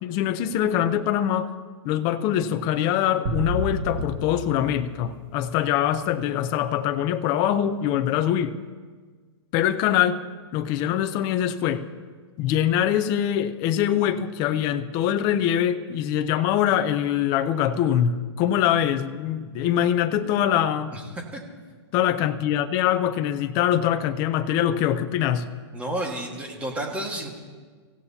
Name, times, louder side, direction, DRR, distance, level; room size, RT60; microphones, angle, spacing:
voice 1, 0.0-1.5 1.8-8.6 9.5-10.2 10.5-11.8 12.4-20.9 21.9-25.5, left 10 dB, 25° left, 9 dB, 0.6 m, -23 dB
sound 1, 3.2-5.7, right 1 dB, 30° right, 2.3 m, -31 dB
voice 2, 20.9-21.4 25.7-27.3, right 1 dB, 10° right, 1 dB, 1.6 m, -31 dB
24.5 x 15.5 x 2.8 m, 1.5 s
hypercardioid pair, 165°, 15 cm